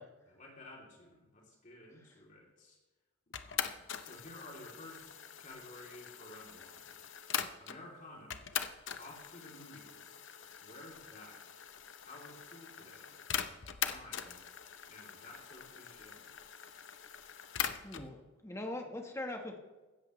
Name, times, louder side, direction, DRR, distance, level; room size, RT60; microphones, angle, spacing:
voice 1, 0.3-2.8 3.3-5.1 5.4-7.0 7.6-8.5 9.0-10.2 10.6-11.6 12.0-13.2 13.8-14.4 14.9-16.4, left 1 dB, 35° left, -1 dB, 3.1 m, -53 dB
sound 1, 3.3-7.8 8.3-18.1, left 8 dB, 60° left, 0.8 m, -42 dB
voice 2, 17.8-19.6, left 1 dB, 15° left, 3 dB, 1.3 m, -41 dB
16.5 x 13.0 x 3.2 m, 1.2 s
head